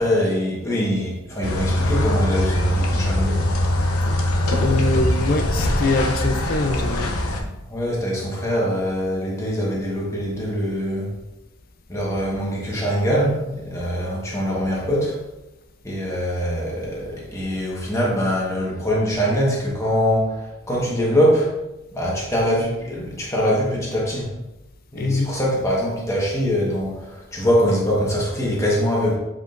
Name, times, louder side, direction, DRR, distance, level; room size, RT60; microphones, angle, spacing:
voice 1, 0.0-3.4 4.9-5.0 7.7-11.1 11.9-15.2 15.8-21.6 21.9-24.3 24.9-29.2, equal, 15° left, -4 dB, 1.3 m, -23 dB
sound 1, 1.4-7.4, left 1 dB, 80° left, 0.9 m, -22 dB
voice 2, 4.6-7.2 25.0-25.4, left 2 dB, 40° left, 7 dB, 0.5 m, -23 dB
7.4 x 5.0 x 2.6 m, 0.98 s
head